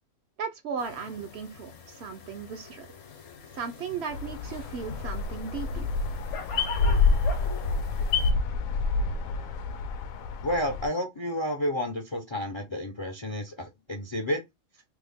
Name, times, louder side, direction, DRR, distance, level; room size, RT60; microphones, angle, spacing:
voice 1, 0.4-2.9 3.5-5.9, right 6 dB, 60° right, 0.7 m, -36 dB
sound 1, 0.8-8.3, left 8 dB, 65° left, 1.1 m, -38 dB
sound 2, 4.1-10.9, left 3 dB, 90° left, 1.0 m, -28 dB
voice 2, 10.4-14.4, left 1 dB, 35° left, 0.4 m, -30 dB
3.5 x 2.1 x 3.4 m
omnidirectional pair, 1.4 m